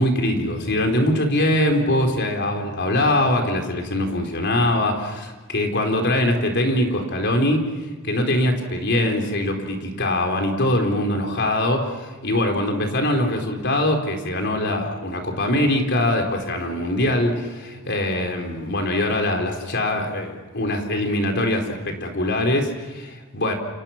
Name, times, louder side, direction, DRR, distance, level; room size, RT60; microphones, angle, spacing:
voice 1, 0.0-23.5, left 1 dB, 55° left, 3 dB, 4.3 m, -22 dB
29.0 x 29.0 x 6.0 m, 1.3 s
head